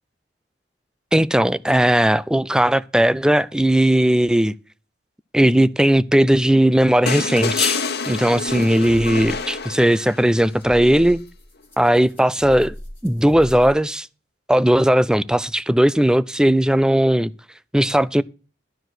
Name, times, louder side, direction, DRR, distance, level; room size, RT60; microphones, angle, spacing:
voice 1, 1.1-4.5 5.3-7.8 8.1-11.2 11.8-12.7 13.0-14.1 14.5-17.3 17.7-18.2, right 1 dB, 5° right, 0.4 m, -17 dB
sound 1, 7.1-10.4 11.9-12.0, left 5 dB, 65° left, 1.3 m, -26 dB
sound 2, 8.5-13.7, equal, 15° left, 2.8 m, -38 dB
12.5 x 4.7 x 7.8 m
head